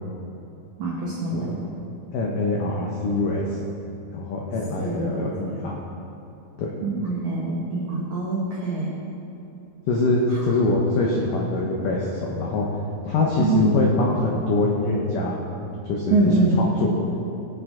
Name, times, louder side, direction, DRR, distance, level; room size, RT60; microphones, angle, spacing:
voice 1, 0.8-1.6 4.8-5.2 6.8-9.0 13.4-13.7 16.1-16.6, right 3 dB, 90° right, -4 dB, 1.6 m, -24 dB
voice 2, 2.1-3.5 4.1-5.7 6.6-6.7 9.9-12.7 13.0-15.4 15.8-16.9, left 2 dB, 85° left, -2 dB, 1.9 m, -24 dB
19.0 x 8.0 x 3.7 m, 2.8 s
omnidirectional pair, 5.3 m